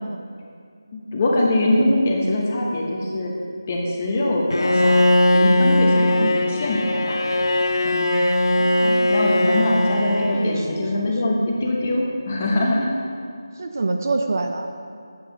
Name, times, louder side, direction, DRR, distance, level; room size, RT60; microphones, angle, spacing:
voice 1, 0.9-3.3 3.7-5.0 5.3-7.2 7.8-8.1 8.9-12.9, left 1 dB, 25° left, -1 dB, 0.9 m, -23 dB
Bowed string instrument, 4.5-10.8, left 1 dB, 85° left, 0.6 m, -19 dB
voice 2, 6.1-6.4 8.6-8.9 9.6-9.7 10.3-11.1 13.6-14.7, right 3 dB, 40° right, 5 dB, 0.5 m, -27 dB
8.4 x 8.0 x 3.9 m, 2.3 s
figure-of-eight pair, 175°, 2 cm